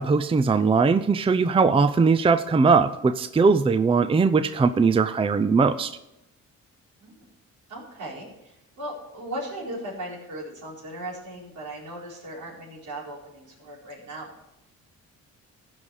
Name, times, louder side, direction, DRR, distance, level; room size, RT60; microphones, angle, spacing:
voice 1, 0.0-5.9, right 4 dB, 20° right, 10 dB, 0.5 m, -20 dB
voice 2, 7.7-14.4, right 1 dB, 75° right, -4 dB, 4.6 m, -37 dB
15.0 x 5.6 x 4.9 m, 0.90 s
cardioid pair, 90°, 30 cm